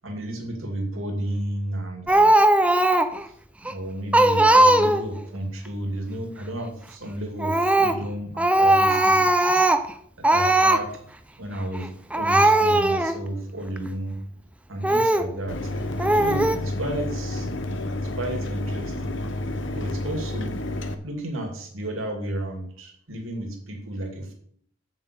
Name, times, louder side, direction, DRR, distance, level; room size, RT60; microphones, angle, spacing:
voice 1, 0.0-2.4 3.6-9.6 10.2-10.9 11.4-14.2 14.7-15.7 16.1-17.5 18.2-19.3 19.7-20.5 21.0-24.3, right 1 dB, 70° right, 3 dB, 2.5 m, -32 dB
Speech, 2.1-3.2 3.6-3.7 4.1-5.2 7.4-8.0 8.4-9.9 10.2-10.8 11.7-11.9 12.1-13.2 13.8-13.9 14.8-15.3 16.0-16.6, right 1 dB, 5° right, 0.5 m, -18 dB
Mechanisms, 15.5-20.9, left 1 dB, 60° left, 1.0 m, -30 dB
7.9 x 7.6 x 6.9 m, 0.62 s
head